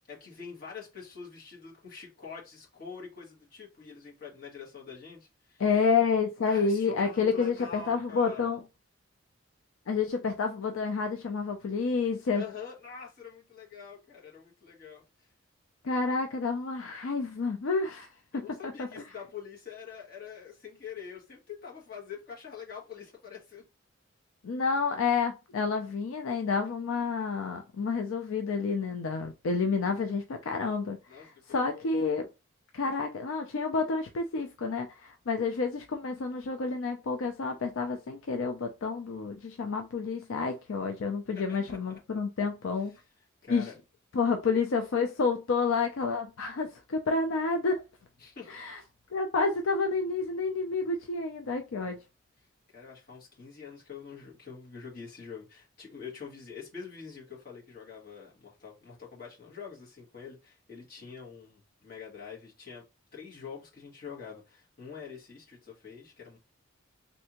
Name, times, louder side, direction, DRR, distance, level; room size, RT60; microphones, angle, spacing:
voice 1, 0.1-5.6 6.4-8.5 12.3-15.0 18.3-23.7 31.1-31.9 41.3-42.0 42.9-43.0 43.4-43.8 48.2-48.6 52.7-62.8 63.1-66.4, left 6 dB, 45° left, 1.5 m, -45 dB
voice 2, 5.6-8.6 9.9-12.4 15.8-18.1 18.8-19.0 24.4-32.3 32.7-43.0 43.5-43.7 44.1-47.8 48.5-48.8 49.1-52.0, left 4 dB, 80° left, 0.4 m, -29 dB
3.3 x 2.7 x 2.9 m
head